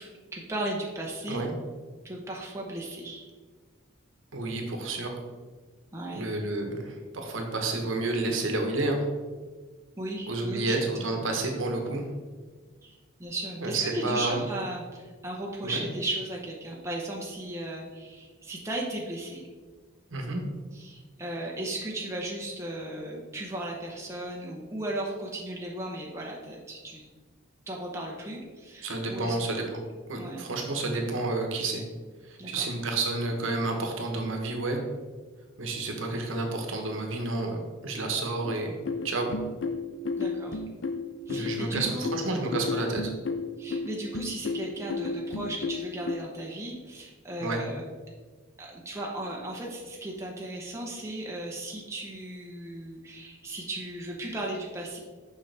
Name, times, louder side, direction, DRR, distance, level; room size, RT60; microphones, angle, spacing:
voice 1, 0.0-1.5 2.0-3.3 5.9-6.2 10.0-10.7 11.3-11.4 12.8-19.4 20.7-27.0 27.7-29.3 30.1-30.4 32.4-32.7 40.2-40.6 41.3-42.1 43.6-47.8 48.6-55.0, right 1 dB, 15° right, -2 dB, 0.9 m, -36 dB
voice 2, 4.3-5.1 6.1-9.0 10.3-12.0 13.6-14.4 15.6-15.8 20.1-20.4 28.8-29.7 30.1-31.8 32.3-34.8 35.6-38.7 39.0-39.3 41.3-43.1 47.4-47.6, right 2 dB, 70° right, 3 dB, 1.1 m, -30 dB
sound 1, 38.5-46.1, left 4 dB, 60° left, 0.5 m, -32 dB
6.4 x 5.7 x 3.4 m, 1.4 s
head